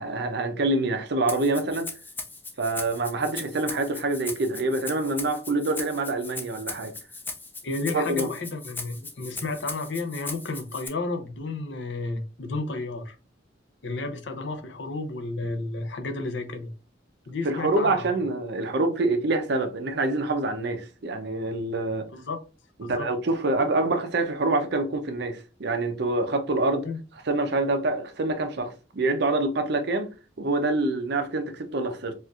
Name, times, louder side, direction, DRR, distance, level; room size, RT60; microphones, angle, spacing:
voice 1, 0.0-1.9 2.6-6.9 7.9-8.3 17.4-22.1 22.8-26.9 27.3-30.1 30.4-32.1, right 2 dB, 60° right, 0.6 m, -26 dB
Rattle (instrument), 1.3-10.9, left 3 dB, 10° left, 0.5 m, -38 dB
voice 2, 7.6-13.2 13.8-16.7 17.3-18.2 22.1-22.4 22.8-23.1 26.8-27.0, left 3 dB, 70° left, 0.6 m, -32 dB
4.3 x 2.5 x 2.4 m
head